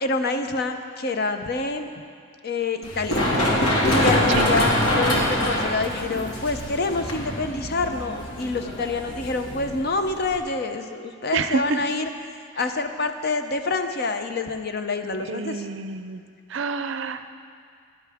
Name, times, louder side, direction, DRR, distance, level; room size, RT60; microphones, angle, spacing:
voice 1, 0.0-1.9 2.4-3.3 3.9-12.1 12.6-15.7, left 3 dB, 50° left, 7 dB, 0.6 m, -27 dB
Run, 2.8-10.4, left 1 dB, 75° left, 2.1 m, -24 dB
voice 2, 11.3-11.8 15.3-16.2 16.5-17.3, right 4 dB, 60° right, 10 dB, 0.5 m, -27 dB
17.5 x 11.0 x 3.5 m, 2.2 s
head